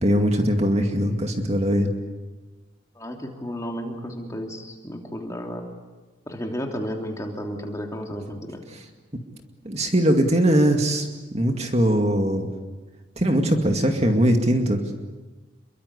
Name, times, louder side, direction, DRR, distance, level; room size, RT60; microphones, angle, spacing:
voice 1, 0.0-1.9 9.6-11.1 11.3-12.5 13.2-14.8, equal, 30° right, 4 dB, 2.3 m, -20 dB
voice 2, 2.9-5.6 6.3-8.6, equal, 15° left, 2 dB, 3.0 m, -32 dB
28.5 x 23.0 x 8.3 m, 1.3 s
head